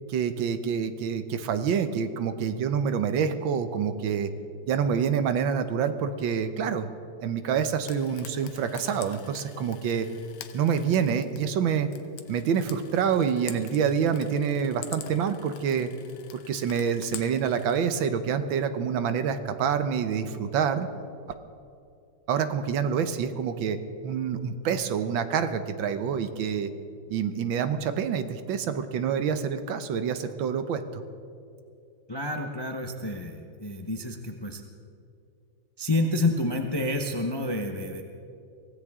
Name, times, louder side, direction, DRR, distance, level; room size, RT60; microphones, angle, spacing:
voice 1, 0.1-4.3 4.7-6.9 7.2-10.1 10.5-11.9 12.3-15.9 16.3-20.9 22.3-23.8 24.0-26.7 27.1-31.0, right 7 dB, 75° right, 10 dB, 1.6 m, -27 dB
Frying (food), 7.8-17.8, left 9 dB, 75° left, 1.6 m, -46 dB
voice 2, 32.1-34.6 35.8-38.0, left 2 dB, 35° left, 3 dB, 0.4 m, -29 dB
24.0 x 16.5 x 3.6 m, 2.5 s
omnidirectional pair, 2.2 m